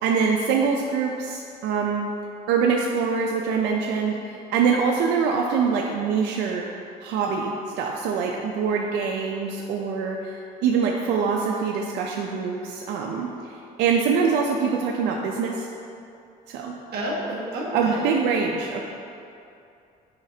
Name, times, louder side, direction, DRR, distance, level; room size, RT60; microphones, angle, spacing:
voice 1, 0.0-2.1 2.5-6.7 7.0-15.7 16.5-16.7 17.7-18.8, right 5 dB, 85° right, 0 dB, 0.5 m, -24 dB
voice 2, 16.9-18.0, right 1 dB, 70° right, -3 dB, 1.4 m, -30 dB
9.6 x 5.0 x 2.8 m, 2.6 s
cardioid pair, 110°, 17 cm